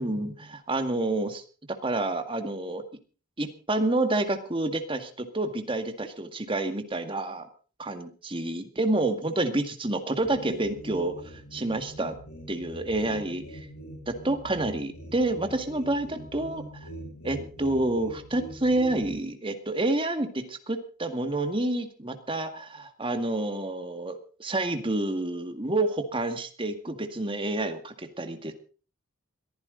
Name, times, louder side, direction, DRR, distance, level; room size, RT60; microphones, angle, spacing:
voice 1, 0.0-1.4 1.7-2.8 3.4-7.5 7.8-12.2 12.5-13.7 14.1-16.9 17.2-28.5, right 2 dB, 25° right, 7 dB, 2.0 m, -29 dB
sound 1, 10.2-19.2, equal, 85° left, 6.8 m, -43 dB
22.0 x 15.0 x 3.9 m, 0.39 s
head